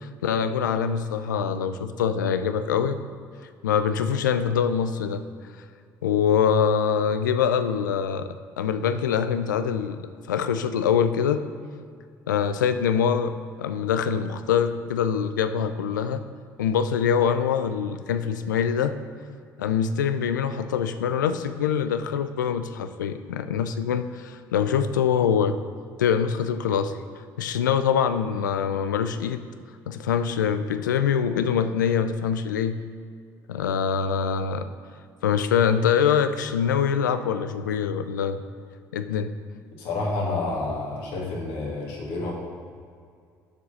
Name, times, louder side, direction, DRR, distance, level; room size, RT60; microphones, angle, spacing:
voice 1, 0.0-3.0 3.6-5.2 6.0-8.3 8.6-11.4 12.3-16.2 16.6-18.9 19.6-25.6 26.0-26.9 27.4-29.4 29.9-32.8 33.5-34.7 35.2-38.4 38.9-39.3, left 7 dB, 90° left, 10 dB, 0.4 m, -24 dB
voice 2, 39.8-42.3, left 2 dB, 70° left, -2 dB, 2.0 m, -29 dB
7.1 x 4.7 x 6.3 m, 2.2 s
hypercardioid pair, 55°, 10 cm